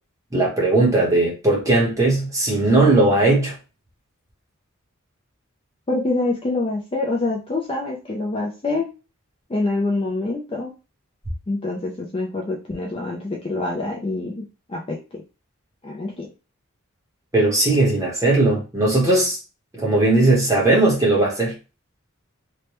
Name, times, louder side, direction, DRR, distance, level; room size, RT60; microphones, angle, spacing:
voice 1, 0.3-3.5 17.3-19.4 19.8-21.5, right 2 dB, 15° right, 0.9 m, -18 dB
voice 2, 5.9-8.9 9.5-10.7 11.5-15.2 15.8-16.3, left 2 dB, 25° left, 0.4 m, -26 dB
3.2 x 2.1 x 2.9 m
head